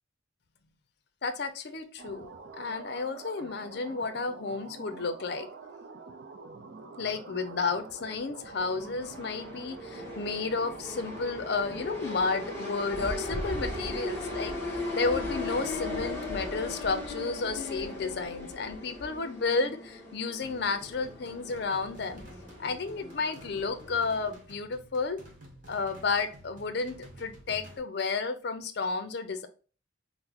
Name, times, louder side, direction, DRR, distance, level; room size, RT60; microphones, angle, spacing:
voice 1, 1.2-5.5 7.0-22.2 22.6-25.2 25.7-29.5, left 4 dB, 55° left, 9 dB, 0.5 m, -32 dB
sound 1, 2.0-16.1, right 3 dB, 60° right, 0.5 m, -46 dB
sound 2, 8.4-24.3, left 2 dB, 15° left, 1.3 m, -38 dB
sound 3, 20.4-27.8, right 1 dB, 40° right, 1.0 m, -51 dB
5.8 x 2.1 x 2.8 m, 0.37 s
head